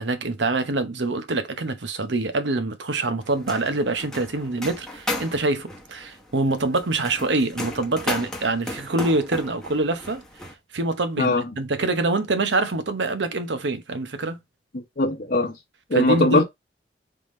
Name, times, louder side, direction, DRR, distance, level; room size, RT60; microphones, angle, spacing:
voice 1, 0.0-10.2 10.7-14.4 15.9-16.4, right 2 dB, 90° right, 0.9 m, -25 dB
sound 1, 3.2-10.5, left 1 dB, 5° left, 0.9 m, -35 dB
voice 2, 14.7-15.6 15.9-16.4, left 2 dB, 55° left, 1.0 m, -20 dB
3.6 x 3.4 x 4.3 m
head